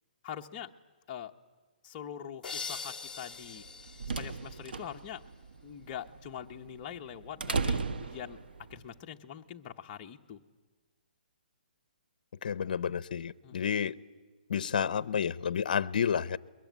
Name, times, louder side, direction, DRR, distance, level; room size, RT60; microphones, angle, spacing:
voice 1, 0.2-0.7 1.1-1.3 1.8-3.6 4.2-5.2 5.6-8.4 8.7-10.4 13.4-13.9, left 9 dB, 25° left, 0.9 m, -43 dB
sound 1, 2.4-5.2, left 5 dB, 5° left, 2.5 m, -43 dB
sound 2, 3.5-8.8, right 4 dB, 80° right, 1.2 m, -36 dB
voice 2, 12.4-14.0 14.5-16.4, left 7 dB, 55° left, 0.7 m, -30 dB
22.0 x 21.5 x 9.4 m
hypercardioid pair, 165°, 5 cm